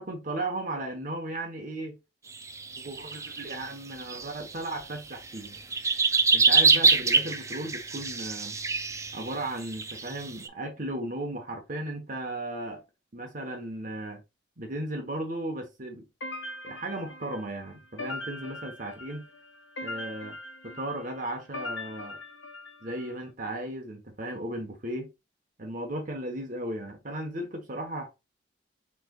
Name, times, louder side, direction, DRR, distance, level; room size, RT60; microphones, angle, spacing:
voice 1, 0.0-2.0 2.8-5.6 6.3-8.6 9.1-12.8 13.1-14.2 14.6-16.1 16.6-19.2 19.8-20.4 20.6-22.2 22.8-25.1 25.6-28.1, right 1 dB, 45° right, 1.0 m, -35 dB
sound 1, 2.3-3.7 3.9-5.0 5.3-10.5, right 4 dB, 15° right, 0.3 m, -25 dB
sound 2, 16.2-23.1, left 2 dB, 70° left, 1.1 m, -41 dB
6.3 x 3.2 x 2.3 m
head